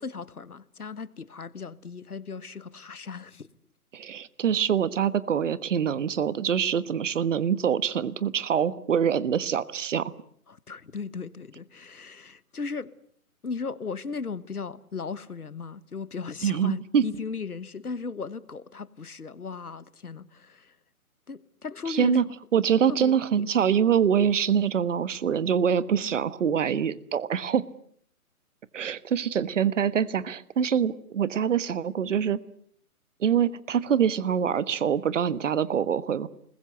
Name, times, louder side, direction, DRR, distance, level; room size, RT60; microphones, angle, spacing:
voice 1, 0.0-3.5 10.5-12.9 13.4-20.7 21.3-22.2 22.9-23.5, left 5 dB, 90° left, 1.4 m, -37 dB
voice 2, 3.9-10.1 16.4-17.0 21.9-22.2 22.5-27.6 28.7-32.4 33.2-36.3, right 8 dB, 55° right, 1.4 m, -25 dB
29.0 x 21.0 x 8.1 m
figure-of-eight pair, 140°, 44 cm